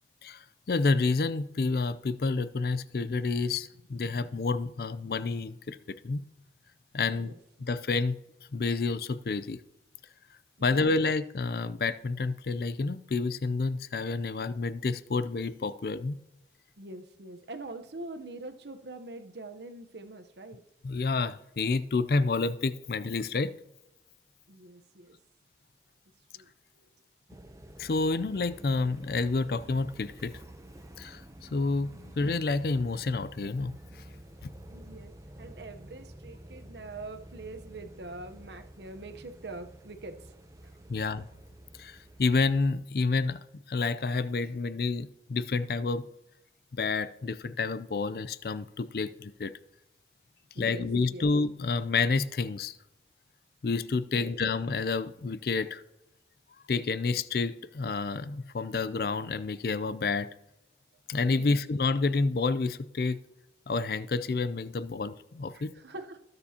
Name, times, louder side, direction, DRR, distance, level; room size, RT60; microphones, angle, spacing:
voice 1, 0.2-5.8 6.0-6.2 6.9-7.3 7.6-8.2 8.5-9.6 10.6-16.2 20.8-23.5 27.8-30.3 31.0-33.7 40.9-41.3 41.8-43.4 43.7-46.0 46.7-49.5 50.6-52.8 53.6-55.8 56.7-60.3 61.1-63.2 63.7-65.7, left 4 dB, 60° left, 0.4 m, -29 dB
voice 2, 7.0-7.4 10.6-10.9 16.8-20.6 24.5-25.2 26.3-26.5 31.9-32.1 34.7-35.1 35.4-40.3 40.6-41.1 50.5-51.2 54.1-54.4 61.3-61.6 65.5-66.2, right 2 dB, 75° right, 0.9 m, -44 dB
sound 1, 27.3-42.7, right 1 dB, 20° right, 0.6 m, -49 dB
20.0 x 6.8 x 2.9 m
head